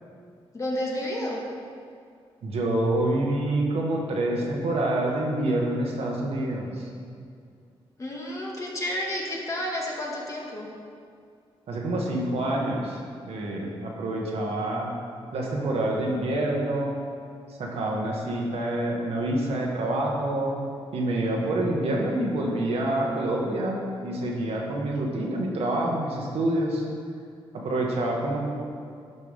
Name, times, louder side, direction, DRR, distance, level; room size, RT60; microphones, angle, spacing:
voice 1, 0.5-1.4 8.0-10.7, left 1 dB, 30° left, -3 dB, 1.8 m, -31 dB
voice 2, 2.4-6.9 11.7-13.0 13.3-14.9 15.3-17.0 17.6-20.6 20.9-26.8 27.5-28.4, right 1 dB, 75° right, -2 dB, 1.5 m, -27 dB
12.0 x 5.5 x 3.7 m, 2.3 s
cardioid pair, 90°, 10 cm